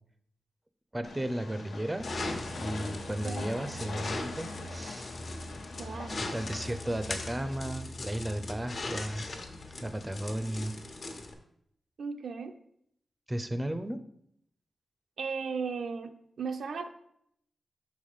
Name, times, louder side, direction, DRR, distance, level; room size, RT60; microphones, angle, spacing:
voice 1, 0.9-2.1 2.5-5.1 6.3-9.3 9.8-10.8 13.3-14.0, right 1 dB, 15° right, 10 dB, 0.5 m, -34 dB
Train, 1.0-7.6, left 3 dB, 85° left, 0.9 m, -43 dB
sound 1, 2.0-11.3, left 2 dB, 60° left, 1.1 m, -39 dB
voice 2, 5.8-6.2 12.0-12.5 15.2-16.9, right 5 dB, 85° right, 6 dB, 0.5 m, -36 dB
5.7 x 5.5 x 5.0 m, 0.72 s
wide cardioid pair, 115°, 0 cm